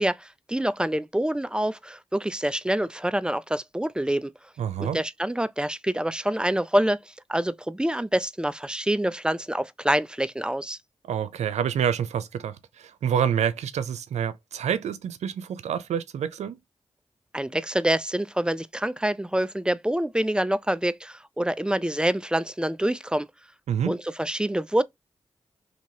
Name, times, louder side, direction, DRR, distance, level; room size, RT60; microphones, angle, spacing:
voice 1, 0.0-4.3 4.8-10.8 17.3-23.3 23.9-24.8, right 1 dB, 10° right, 0.4 m, -26 dB
voice 2, 4.6-5.0 11.1-16.6 23.7-24.0, right 8 dB, 90° right, 0.4 m, -27 dB
2.9 x 2.8 x 2.7 m
cardioid pair, 40°, 11 cm